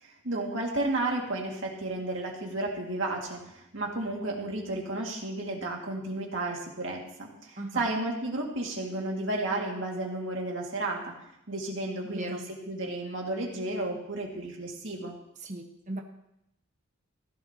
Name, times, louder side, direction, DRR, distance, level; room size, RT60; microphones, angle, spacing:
voice 1, 0.0-11.1 11.5-15.2, right 2 dB, 60° right, 0 dB, 2.2 m, -33 dB
voice 2, 7.6-7.9 12.0-12.4 15.4-16.0, right 1 dB, 35° right, 2 dB, 1.2 m, -37 dB
16.0 x 11.0 x 3.0 m, 0.81 s
head